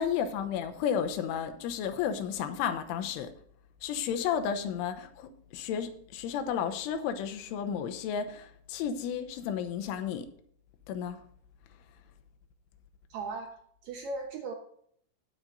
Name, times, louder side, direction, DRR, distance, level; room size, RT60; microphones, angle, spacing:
voice 1, 0.0-3.3 3.8-10.3 10.9-11.2, left 8 dB, 85° left, 7 dB, 3.4 m, -32 dB
voice 2, 13.1-13.5 13.8-14.5, right 3 dB, 80° right, 2 dB, 1.9 m, -37 dB
18.0 x 7.6 x 2.6 m, 0.63 s
omnidirectional pair, 5.5 m